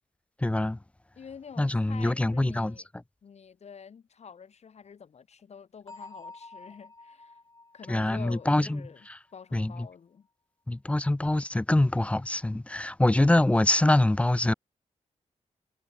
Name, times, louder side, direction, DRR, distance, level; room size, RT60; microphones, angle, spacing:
voice 1, 0.4-0.8 1.6-2.8 7.9-9.2 9.5-9.9 10.7-14.5, left 1 dB, 10° left, 0.4 m, -24 dB
voice 2, 1.2-2.9 3.2-7.4 7.7-9.1 9.3-10.3, left 6 dB, 60° left, 1.2 m, -47 dB
Bell, 5.9-9.5, left 3 dB, 25° left, 6.4 m, -50 dB
wide cardioid pair, 110°, 13 cm